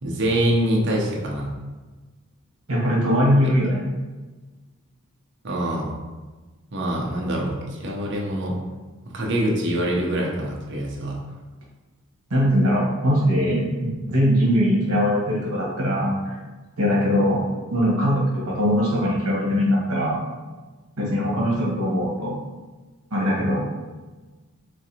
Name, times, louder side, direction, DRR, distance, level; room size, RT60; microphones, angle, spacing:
voice 1, 0.0-1.5 5.4-5.9 6.7-8.6 9.1-11.2, right 1 dB, 55° right, -2 dB, 0.6 m, -24 dB
voice 2, 2.7-3.8 12.3-16.3 16.8-17.4 17.7-20.2 21.0-22.4 23.1-23.6, equal, 75° right, -4 dB, 1.2 m, -21 dB
3.9 x 2.5 x 2.8 m, 1.3 s
head